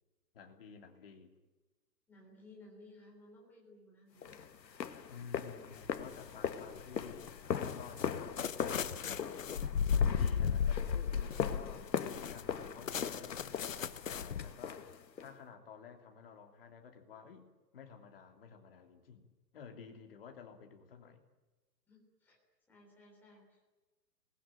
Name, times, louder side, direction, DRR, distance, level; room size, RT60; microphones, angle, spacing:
voice 1, 0.3-1.3 5.1-9.8 10.1-17.5 17.7-19.3 19.5-21.2, left 6 dB, 35° left, 4 dB, 3.1 m, -53 dB
voice 2, 2.1-4.4 21.9-22.4 22.7-23.7, left 2 dB, 5° left, -3 dB, 3.7 m, -58 dB
sound 1, 4.2-15.3, left 7 dB, 85° left, 2.1 m, -40 dB
sound 2, 5.7-6.3 6.7-14.5, left 7 dB, 50° left, 1.1 m, -35 dB
26.5 x 20.5 x 9.1 m, 1.2 s
hypercardioid pair, 180°, 50 cm